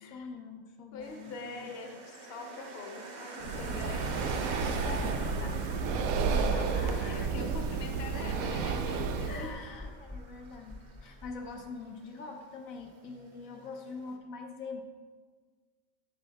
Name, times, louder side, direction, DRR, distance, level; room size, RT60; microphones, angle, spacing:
voice 1, 0.0-1.7 3.6-3.8 4.7-7.3 9.3-14.8, left 4 dB, 75° left, 3 dB, 1.1 m, -44 dB
voice 2, 0.9-4.4 6.2-9.5 11.1-11.2, left 3 dB, 50° left, 3 dB, 1.0 m, -44 dB
sound 1, 1.0-14.2, right 3 dB, 45° right, 0.7 m, -46 dB
Breathing, 3.4-9.5, right 5 dB, 85° right, 1.0 m, -31 dB
sound 2, 4.4-5.5 6.5-7.7 8.4-9.1 9.8-11.4, left 1 dB, 5° right, 0.7 m, -46 dB
7.8 x 6.9 x 3.4 m, 1.5 s
omnidirectional pair, 1.5 m